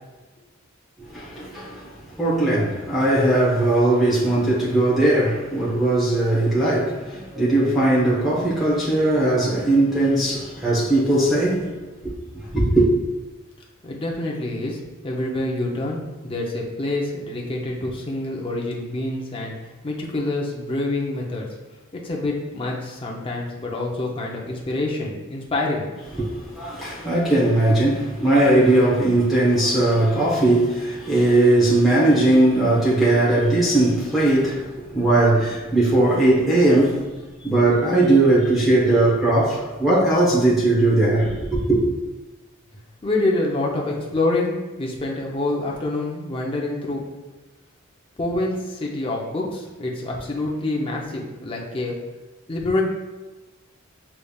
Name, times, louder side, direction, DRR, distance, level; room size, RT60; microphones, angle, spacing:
voice 1, 1.1-11.7 12.0-12.2 12.5-12.9 26.2-37.0 37.4-41.8, right 2 dB, ahead, 1.0 m, -19 dB
voice 2, 13.8-19.5 19.8-21.4 21.9-25.9 43.0-47.0 48.2-52.0 52.5-52.8, left 2 dB, 25° left, 0.6 m, -26 dB
6.8 x 3.3 x 2.3 m
head